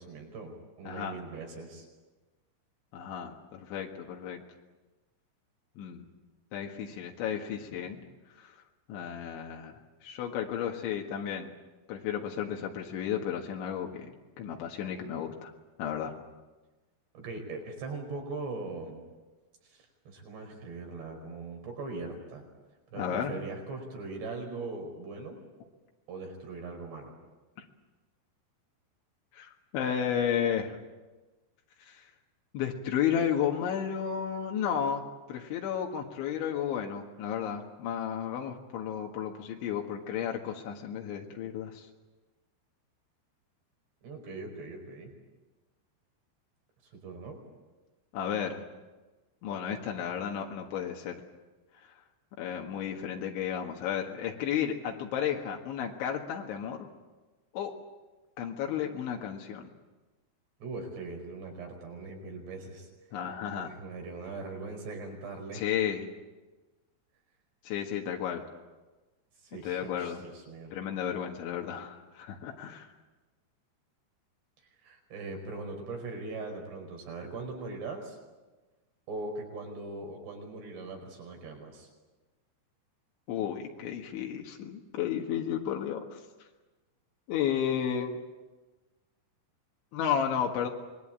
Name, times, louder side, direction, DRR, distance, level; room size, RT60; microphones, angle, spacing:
voice 1, 0.0-1.9 17.1-19.0 19.7-22.5 22.9-25.4 26.1-27.1 44.0-45.1 46.9-47.4 60.6-62.9 63.5-65.7 69.4-70.7 74.8-78.2 79.1-81.9, right 3 dB, 65° right, 3 dB, 7.2 m, -40 dB
voice 2, 0.9-1.2 2.9-4.4 5.8-6.1 6.5-8.0 8.4-8.5 8.9-11.5 11.9-15.5 15.8-16.1 23.0-23.3 27.6-27.7 29.3-30.8 31.8-32.0 32.5-35.0 35.3-41.9 48.1-48.6 49.4-51.2 52.4-56.9 57.5-57.7 58.4-59.7 63.1-63.7 65.5-66.1 67.6-68.4 69.6-70.2 70.7-72.9 83.3-86.2 87.3-88.2 89.9-90.7, left 8 dB, 85° left, 1 dB, 4.1 m, -33 dB
26.5 x 21.5 x 8.8 m, 1.2 s
omnidirectional pair, 5.2 m